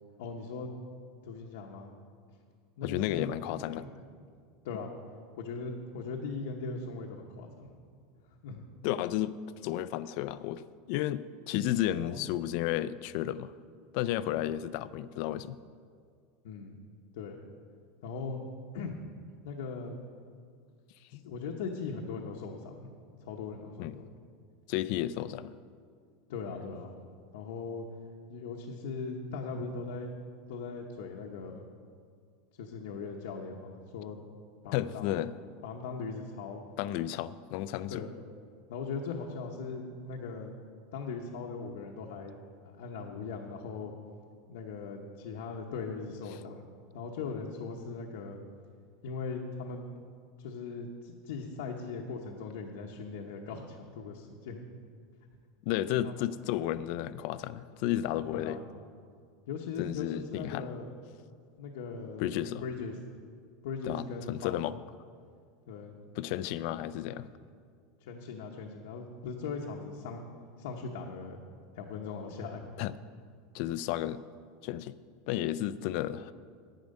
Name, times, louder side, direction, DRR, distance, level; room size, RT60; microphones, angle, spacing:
voice 1, 0.2-0.8 1.2-1.9 2.8-3.4 3.7-3.9 4.6-4.9 5.4-7.7 8.4-8.6 12.0-12.2 16.4-16.8 17.1-17.4 18.0-18.5 18.7-19.0 19.4-20.0 21.2-24.1 26.3-26.9 27.3-27.9 28.3-30.1 30.5-31.7 32.6-34.2 34.6-35.2 35.6-36.6 37.9-38.1 38.7-40.6 40.9-42.4 42.6-43.9 44.5-46.7 46.9-48.4 49.0-49.9 50.4-54.7 56.0-56.3 58.3-58.6 59.5-60.9 61.6-62.9 63.6-64.6 65.7-66.0 67.2-67.3 68.0-70.2 70.6-71.4 71.7-72.7, left 4 dB, 75° left, 0 dB, 1.0 m, -39 dB
voice 2, 2.8-3.8 8.8-9.4 9.6-13.5 13.9-15.6 21.1-21.2 23.8-24.0 24.7-25.5 34.7-35.3 36.8-38.0 55.7-58.6 59.8-60.7 62.2-62.6 63.9-64.8 66.2-67.3 72.8-72.9 73.5-74.2 74.6-74.9 75.3-76.3, left 13 dB, 50° left, 16 dB, 0.3 m, -32 dB
10.5 x 9.3 x 5.3 m, 2.1 s
supercardioid pair, 170°, 0 cm